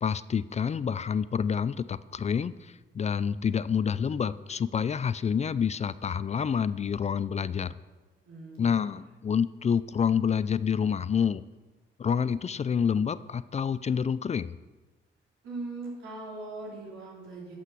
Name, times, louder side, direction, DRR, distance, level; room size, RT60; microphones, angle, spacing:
voice 1, 0.0-7.7 8.6-11.4 12.0-14.5, left 7 dB, 35° left, 16 dB, 0.4 m, -28 dB
sound 1, 7.8-8.7, equal, 40° right, 3.2 m, -61 dB
voice 2, 8.3-8.9 15.4-17.5, right 2 dB, 90° right, -5 dB, 3.6 m, -40 dB
11.5 x 5.7 x 6.0 m, 1.2 s
cardioid pair, 65°, 20 cm